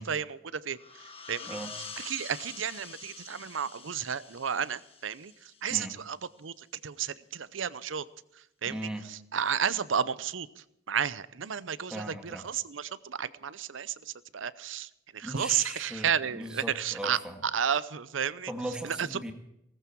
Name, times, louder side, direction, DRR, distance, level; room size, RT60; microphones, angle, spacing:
voice 1, 0.0-1.6 2.0-8.0 8.6-8.9 9.3-18.5 18.8-19.1, right 8 dB, 80° right, 17 dB, 0.7 m, -32 dB
sound 1, 0.7-6.1, left 5 dB, 30° left, 1.5 m, -46 dB
voice 2, 1.5-1.8 5.7-6.0 8.7-9.1 11.9-12.5 15.2-17.4 18.5-19.3, right 1 dB, 5° right, 3 dB, 1.8 m, -38 dB
18.5 x 14.5 x 4.6 m, 0.82 s
head